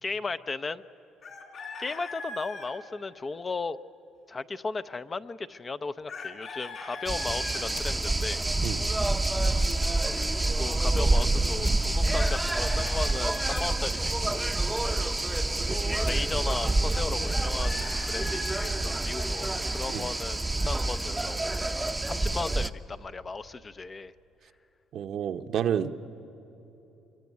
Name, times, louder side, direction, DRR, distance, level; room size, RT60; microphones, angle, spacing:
voice 1, 0.0-0.8 1.8-3.8 4.3-8.5 9.9-10.1 10.5-14.4 15.7-21.4 22.0-24.1, left 4 dB, 25° left, 12 dB, 0.6 m, -36 dB
Chicken rooster, 1.2-2.7 6.1-7.6 12.2-13.7 17.3-18.8, left 3 dB, 45° left, 3.6 m, -40 dB
sound 1, 6.7-21.2, left 5 dB, 80° left, 4.4 m, -56 dB
sound 2, 7.1-22.7, right 2 dB, 10° right, 0.7 m, -27 dB
voice 2, 24.9-25.9, right 9 dB, 60° right, 9 dB, 0.9 m, -30 dB
24.0 x 23.5 x 9.4 m, 3.0 s
cardioid pair, 115°, 0 cm